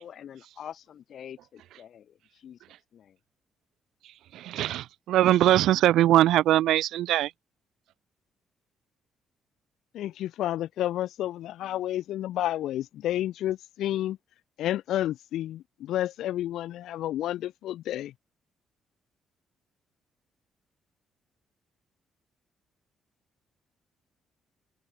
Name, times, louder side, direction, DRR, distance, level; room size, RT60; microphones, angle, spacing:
voice 1, 0.0-2.6 2.9-3.2, left 9 dB, 65° left, 3.1 m, -45 dB
voice 2, 4.0-7.3, right 13 dB, 85° right, 1.4 m, -22 dB
voice 3, 9.9-14.2 14.6-18.1, left 13 dB, 80° left, 1.1 m, -30 dB
cardioid pair, 90°, 0 cm